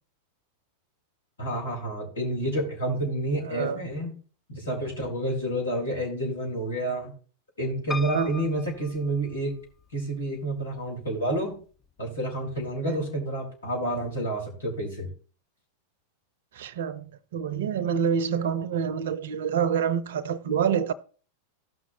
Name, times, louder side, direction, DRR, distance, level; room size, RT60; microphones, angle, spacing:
voice 1, 1.4-4.1 4.5-7.1 7.6-9.5 9.9-11.6 12.0-15.1, right 1 dB, 75° left, 4.5 m, -29 dB
voice 2, 3.4-3.8 8.1-8.5 12.8-13.0 16.5-20.9, right 7 dB, 60° right, 0.7 m, -27 dB
Piano, 7.9-9.9 10.5-11.2 11.5-11.6 11.8-11.9, left 4 dB, 15° left, 0.7 m, -39 dB
17.0 x 6.2 x 2.9 m
figure-of-eight pair, 90°, 0 cm